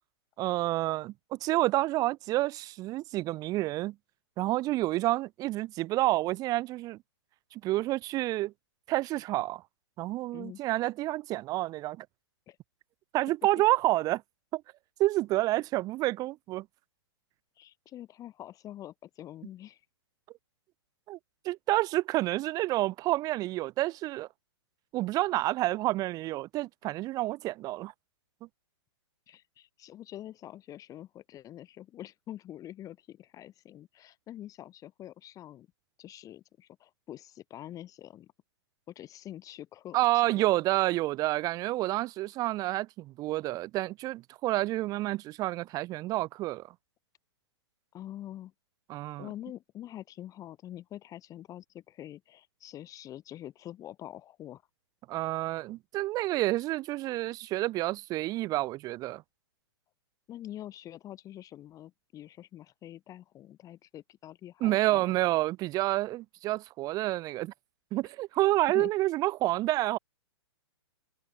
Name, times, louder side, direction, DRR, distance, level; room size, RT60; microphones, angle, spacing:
voice 1, 0.4-3.9 4.4-7.0 7.5-8.5 8.9-9.6 10.0-12.1 13.1-14.2 14.5-14.6 15.0-16.7 21.1-21.2 21.4-24.3 24.9-27.9 39.9-46.7 48.9-49.3 55.1-59.2 64.6-67.5 67.9-70.0, right 17 dB, 25° right, 0.8 m, -29 dB
voice 2, 17.6-19.8 29.3-35.7 36.0-38.3 38.9-40.4 47.9-48.5 49.2-54.6 60.3-65.1 68.7-68.9, left 12 dB, 25° left, 3.2 m, -45 dB
hypercardioid pair, 140°, 15 cm